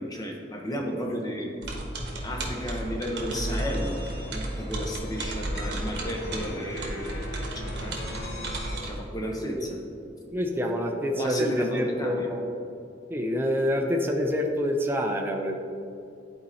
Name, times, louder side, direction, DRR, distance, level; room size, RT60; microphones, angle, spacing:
voice 1, 0.0-1.5 2.2-8.3 8.8-9.8 11.2-12.3, equal, 20° left, 0 dB, 0.9 m, -33 dB
sound 1, 1.6-9.0, right 1 dB, 75° right, 1.1 m, -34 dB
sound 2, 2.0-8.8, left 1 dB, 65° left, 1.6 m, -40 dB
voice 2, 10.3-12.5 13.1-15.5, equal, 15° right, 2 dB, 0.5 m, -27 dB
11.0 x 4.3 x 2.8 m, 2.5 s
head